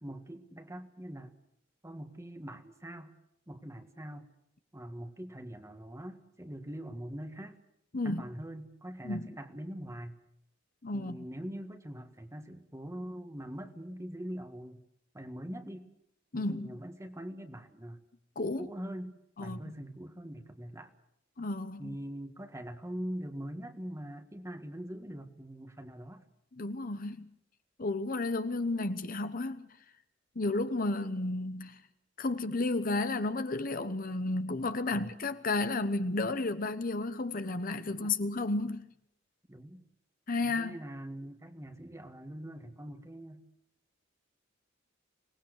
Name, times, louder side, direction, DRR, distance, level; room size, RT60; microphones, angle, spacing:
voice 1, 0.0-1.3 1.8-3.1 3.5-4.3 4.7-7.6 8.0-10.2 10.9-14.8 15.1-15.9 16.3-18.0 18.6-20.9 21.8-26.2 34.9-35.1 37.9-38.1 39.5-39.8 40.4-43.4, equal, 15° right, 1.6 m, -43 dB
voice 2, 10.8-11.2 16.3-16.8 18.4-18.7 19.4-19.7 21.4-21.9 26.5-27.3 27.8-29.7 30.3-31.8 32.2-38.9 40.3-40.8, left 2 dB, 45° left, 1.1 m, -32 dB
25.0 x 19.5 x 6.5 m
head